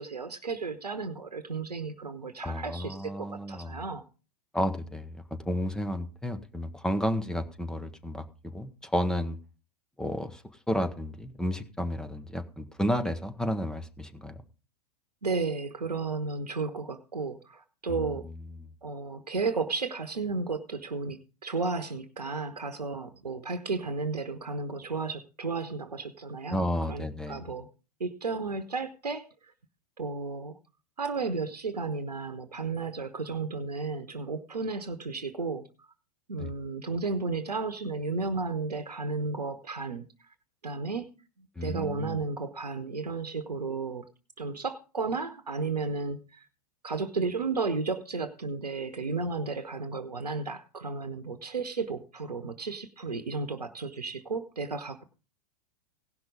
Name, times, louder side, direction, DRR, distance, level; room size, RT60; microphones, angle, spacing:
voice 1, 0.0-4.0 15.2-18.3 18.8-27.7 28.0-29.5 30.0-30.6 31.0-35.9 36.3-40.1 40.6-41.1 41.4-44.0 44.4-46.5 46.8-55.0, right 4 dB, 85° right, 9 dB, 1.0 m, -33 dB
voice 2, 2.4-3.8 4.5-9.4 10.0-14.4 17.9-18.1 26.5-27.4 36.4-36.5 41.6-42.2, equal, 5° left, 8 dB, 1.1 m, -32 dB
17.0 x 6.0 x 5.2 m, 0.34 s
figure-of-eight pair, 100°, 20 cm